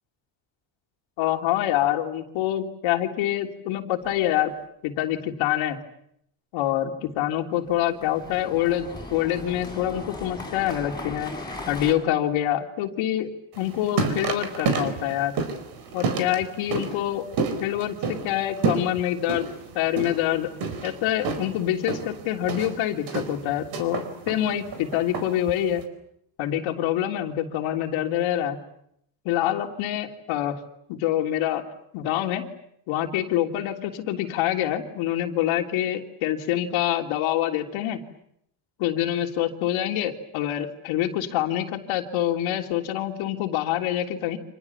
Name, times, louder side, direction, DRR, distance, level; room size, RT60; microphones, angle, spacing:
voice 1, 1.2-4.5 4.8-5.8 6.5-11.3 11.7-15.3 15.9-17.2 17.6-19.5 19.7-20.5 20.8-25.8 26.4-28.6 29.2-30.6 30.9-31.7 31.9-32.4 32.9-38.0 38.8-44.4, left 12 dB, 90° left, 3 dB, 3.3 m, -26 dB
sound 1, 4.0-4.5 7.7-11.9, left 2 dB, 10° left, 6.0 m, -38 dB
sound 2, 13.5-25.8, right 4 dB, 50° right, 4.6 m, -30 dB
29.5 x 27.0 x 7.2 m, 0.74 s
cardioid pair, 170°, 47 cm